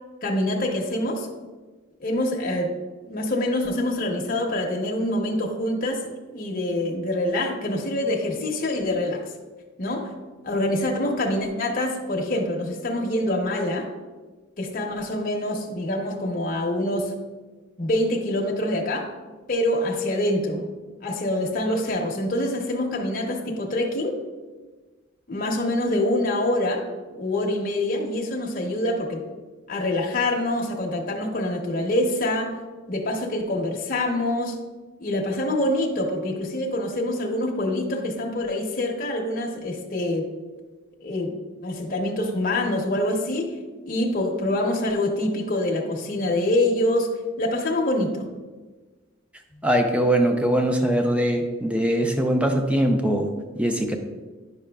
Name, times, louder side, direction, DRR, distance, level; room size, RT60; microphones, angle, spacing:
voice 1, 0.2-1.3 2.0-2.7 3.0-6.0 6.3-9.2 9.8-10.1 10.4-13.9 14.6-17.1 17.8-19.1 19.5-20.7 21.0-24.1 25.3-26.9 27.2-29.3 29.7-32.6 32.9-34.6 35.0-40.3 41.0-41.3 41.6-43.6 43.8-47.1 47.4-48.3, left 1 dB, 50° left, 0 dB, 0.8 m, -25 dB
voice 2, 49.6-54.0, right 1 dB, 5° right, 4 dB, 0.6 m, -22 dB
9.6 x 5.6 x 2.3 m, 1.3 s
head